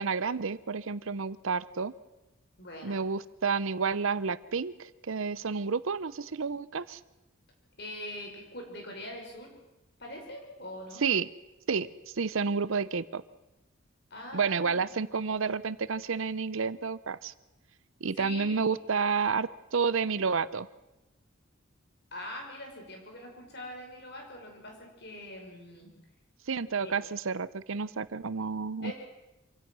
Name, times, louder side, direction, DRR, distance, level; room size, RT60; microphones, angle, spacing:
voice 1, 0.0-1.9 2.8-7.0 11.0-11.3 11.7-11.9 12.2-13.2 14.3-17.3 18.0-20.7 26.5-28.9, right 5 dB, 75° right, 17 dB, 0.7 m, -30 dB
voice 2, 2.6-3.0 7.8-9.5 10.0-11.0 14.1-15.1 18.1-18.6 22.1-25.9 26.8-27.0 28.8-28.9, left 1 dB, 50° left, 1 dB, 5.5 m, -43 dB
26.0 x 16.5 x 6.2 m, 0.97 s
head